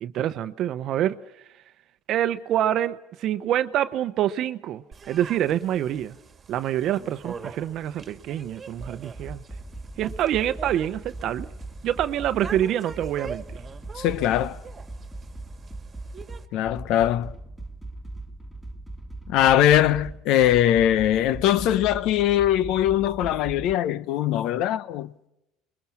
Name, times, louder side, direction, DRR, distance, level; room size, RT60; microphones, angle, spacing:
voice 1, 0.0-1.2 2.1-6.2 6.5-9.4 10.0-11.5 11.8-13.4, right 11 dB, 50° right, 0.8 m, -26 dB
sound 1, 4.9-16.5, right 5 dB, 25° right, 1.9 m, -43 dB
sound 2, 8.8-23.7, right 2 dB, ahead, 2.0 m, -39 dB
voice 2, 14.0-14.6 16.5-17.3 19.3-25.1, left 11 dB, 65° left, 0.8 m, -21 dB
29.5 x 22.0 x 5.9 m
cardioid pair, 125°, 0 cm